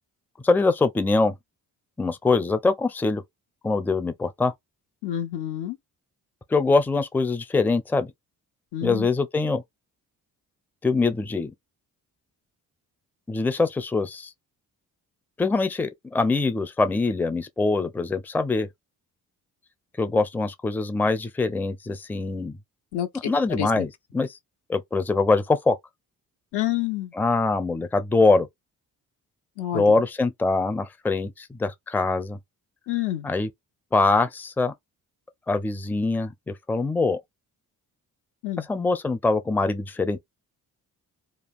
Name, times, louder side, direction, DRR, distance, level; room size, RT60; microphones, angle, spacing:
voice 1, 0.4-1.3 2.0-3.2 3.6-4.5 6.5-8.1 8.8-9.6 10.8-11.5 13.3-14.3 15.4-18.7 20.0-22.5 23.3-24.3 24.7-25.8 27.2-28.5 29.7-32.4 33.2-33.5 33.9-34.7 35.5-37.2 38.7-40.2, left 3 dB, 5° left, 0.5 m, -23 dB
voice 2, 5.0-5.8 8.7-9.1 22.9-23.9 26.5-27.1 29.6-29.9 32.9-33.3 38.4-38.7, left 12 dB, 75° left, 0.9 m, -28 dB
2.5 x 2.3 x 3.5 m
supercardioid pair, 50°, 41 cm